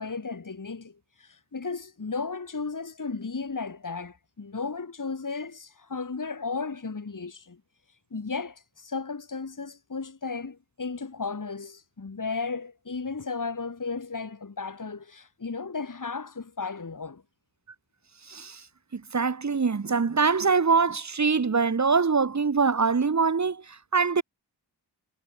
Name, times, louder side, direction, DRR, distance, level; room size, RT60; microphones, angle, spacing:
voice 1, 0.0-7.6 8.1-17.2, left 4 dB, 45° left, 2.4 m, -34 dB
voice 2, 18.3-18.6 18.9-24.2, right 5 dB, 40° right, 1.1 m, -24 dB
wide cardioid pair, 70°, 42 cm